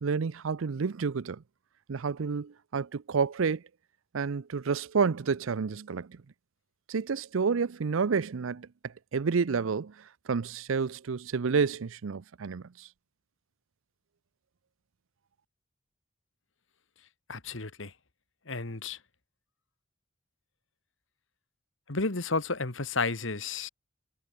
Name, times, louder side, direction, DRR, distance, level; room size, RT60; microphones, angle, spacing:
voice 1, 0.0-1.4 1.9-3.6 4.1-6.2 6.9-12.9, right 5 dB, 90° right, 0.5 m, -30 dB
voice 2, 17.3-17.9 18.5-19.0 21.9-23.7, left 3 dB, 75° left, 2.0 m, -32 dB
head